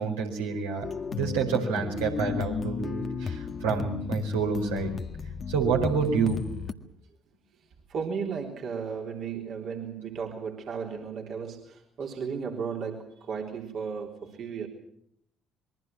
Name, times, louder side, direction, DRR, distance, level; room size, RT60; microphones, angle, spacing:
voice 1, 0.0-4.9 5.5-6.6, right 6 dB, 70° right, 0 dB, 4.8 m, -28 dB
sound 1, 0.8-6.7, left 5 dB, 35° left, 1.7 m, -33 dB
voice 2, 7.9-14.7, right 6 dB, 50° right, 0 dB, 3.8 m, -35 dB
27.0 x 22.5 x 6.0 m, 0.71 s
figure-of-eight pair, 50°, 0 cm